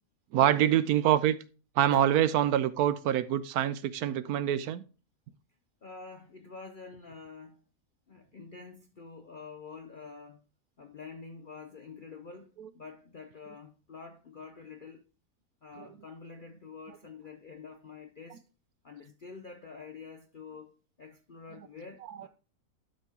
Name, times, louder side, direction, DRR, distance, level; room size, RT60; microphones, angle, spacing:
voice 1, 0.3-1.4 1.8-4.8 12.6-12.7 15.8-15.9 22.1-22.3, right 11 dB, 75° right, 1.0 m, -26 dB
voice 2, 5.8-7.6 8.1-10.4 10.8-15.0 15.6-18.4 18.8-22.3, left 5 dB, 55° left, 0.5 m, -47 dB
12.0 x 4.4 x 3.6 m
omnidirectional pair, 1.7 m